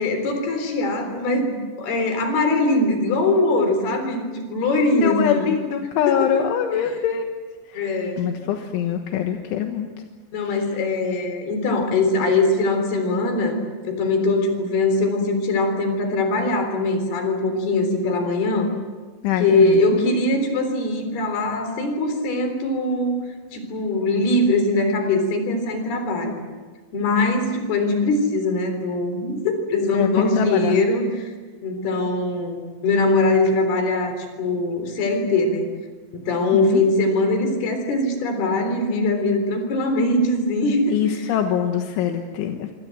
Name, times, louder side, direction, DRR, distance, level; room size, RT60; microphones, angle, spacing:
voice 1, 0.0-5.5 6.2-6.5 6.8-7.0 7.8-8.5 10.3-18.7 19.4-23.2 23.5-26.4 26.9-31.3 31.6-35.7 36.1-41.2, left 2 dB, 55° left, 6 dB, 5.5 m, -22 dB
voice 2, 4.9-7.2 7.7-9.9 19.2-20.2 29.9-30.8 36.5-36.8 40.9-42.7, left 9 dB, 80° left, 4 dB, 3.7 m, -24 dB
26.0 x 25.5 x 7.8 m, 1.4 s
omnidirectional pair, 5.5 m